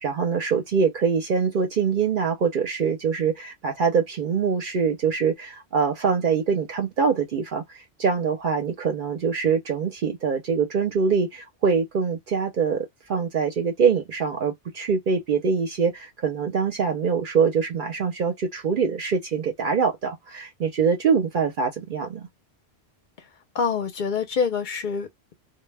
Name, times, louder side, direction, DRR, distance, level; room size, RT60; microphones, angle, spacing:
voice 1, 0.0-7.6 8.0-22.3, right 6 dB, 55° right, 0.7 m, -24 dB
voice 2, 23.5-25.3, left 5 dB, 55° left, 0.6 m, -26 dB
2.1 x 2.0 x 3.1 m
omnidirectional pair, 1.1 m